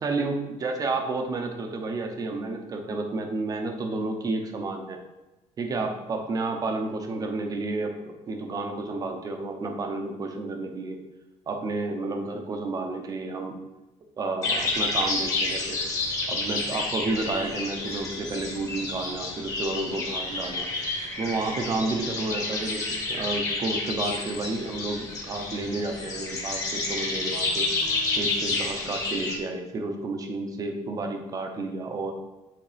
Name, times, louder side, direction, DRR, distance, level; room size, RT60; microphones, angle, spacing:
voice 1, 0.0-5.0 5.6-11.0 11.5-13.6 14.2-15.8 16.3-20.7 21.2-22.8 23.1-27.7 28.2-32.1, right 3 dB, 30° right, 4 dB, 0.9 m, -31 dB
sound 1, 14.4-29.4, left 3 dB, 25° left, 1.4 m, -30 dB
8.9 x 3.6 x 5.0 m, 1.0 s
cardioid pair, 175°, 13 cm